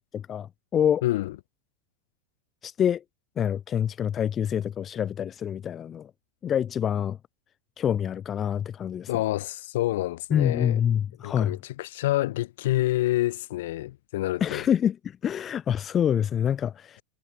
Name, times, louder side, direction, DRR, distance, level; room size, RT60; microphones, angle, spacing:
voice 1, 0.1-1.0 2.6-3.0 3.4-6.1 6.4-7.2 7.8-9.1 10.3-11.6 14.4-17.0, left 9 dB, 25° left, 0.4 m, -26 dB
voice 2, 1.0-1.3 9.1-10.8 11.2-14.6, left 16 dB, 55° left, 1.8 m, -27 dB
figure-of-eight pair, 90°, 0 cm